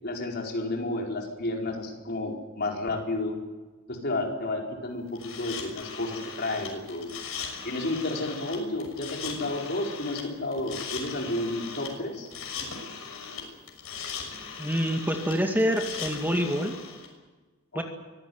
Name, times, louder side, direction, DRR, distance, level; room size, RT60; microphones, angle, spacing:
voice 1, 0.0-3.4 3.9-5.0 5.4-7.1 7.6-12.3, left 2 dB, 50° left, 1 dB, 4.8 m, -31 dB
sound 1, 5.2-17.1, left 6 dB, 80° left, 6.3 m, -39 dB
voice 2, 14.6-16.8 17.7-17.8, equal, 10° right, 3 dB, 2.1 m, -26 dB
24.5 x 16.5 x 9.5 m, 1.2 s
head